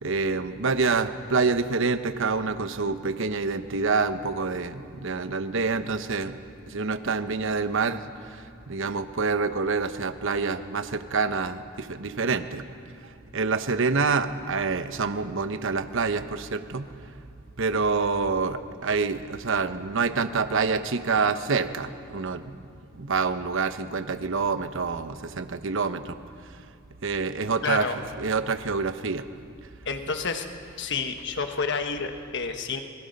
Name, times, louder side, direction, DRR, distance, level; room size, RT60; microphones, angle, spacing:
voice 1, 0.0-6.4 6.7-12.6 13.3-17.2 17.6-22.6 22.9-26.2 27.0-27.9 28.2-29.2, right 4 dB, 65° right, 10 dB, 0.9 m, -27 dB
voice 2, 27.6-27.9 29.8-30.5 30.8-32.8, left 5 dB, 60° left, 6 dB, 1.3 m, -29 dB
24.5 x 22.0 x 5.4 m, 2.4 s
head